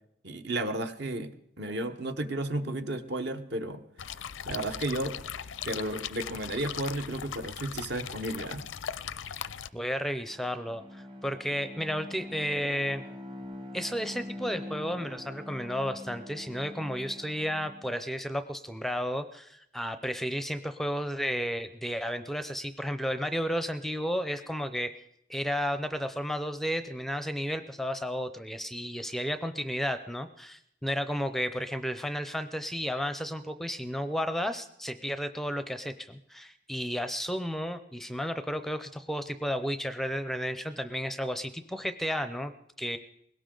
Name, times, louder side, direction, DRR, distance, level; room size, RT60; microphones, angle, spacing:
voice 1, 0.2-1.3 1.6-3.8 4.4-5.1 5.6-8.6, right 1 dB, 60° right, 8 dB, 1.1 m, -33 dB
sound 1, 4.0-9.7, left 8 dB, 85° left, 0.5 m, -39 dB
voice 2, 9.7-13.0 13.7-24.9 25.3-42.5 42.8-43.0, equal, ahead, 10 dB, 0.5 m, -33 dB
Bowed string instrument, 10.2-18.0, left 1 dB, 25° right, 1.0 m, -44 dB
21.0 x 18.0 x 3.9 m, 0.77 s
head